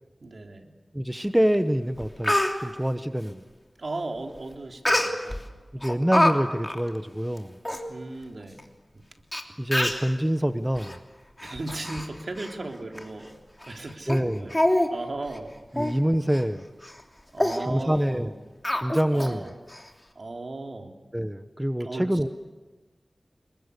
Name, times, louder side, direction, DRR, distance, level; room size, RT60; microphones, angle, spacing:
voice 1, 0.2-0.7 2.3-2.4 3.8-5.4 7.9-8.6 11.4-13.4 13.7-14.5 14.9-15.8 17.3-18.3 19.1-19.5 20.1-20.9 21.8-22.0, right 2 dB, 65° right, 3 dB, 3.4 m, -36 dB
voice 2, 0.9-2.3 2.6-3.4 5.7-7.6 9.6-11.0 14.1-14.5 15.7-16.7 17.6-18.3 18.7-19.5 21.1-22.3, equal, 10° right, 10 dB, 1.0 m, -26 dB
Speech, 1.5-1.6 2.0-2.5 4.9-5.4 5.8-6.3 6.6-6.8 7.4-7.5 7.6-7.8 8.6-8.7 9.3-9.4 9.7-10.1 10.8-11.0 11.4-12.1 12.4-12.5 13.0-13.1 13.6-13.8 14.1-14.2 14.5-14.9 15.2-15.4 15.8-16.0 16.3-16.4 16.8-17.0 17.4-17.6 18.6-19.3 19.7-19.8, left 1 dB, 20° left, 3.1 m, -25 dB
27.0 x 22.5 x 8.3 m, 1.2 s
wide cardioid pair, 65°, 0 cm